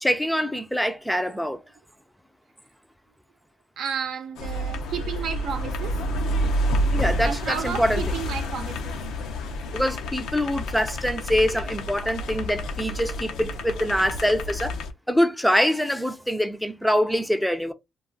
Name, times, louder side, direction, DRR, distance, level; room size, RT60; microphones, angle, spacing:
voice 1, 0.0-1.6 6.9-8.0 9.7-14.7 15.1-17.7, equal, 5° left, 0.4 m, -24 dB
voice 2, 3.8-6.0 7.2-9.1, right 7 dB, 75° right, 0.6 m, -32 dB
sound 1, 4.4-14.9, equal, 85° left, 0.5 m, -29 dB
2.3 x 2.3 x 3.8 m
cardioid pair, 90°, 0 cm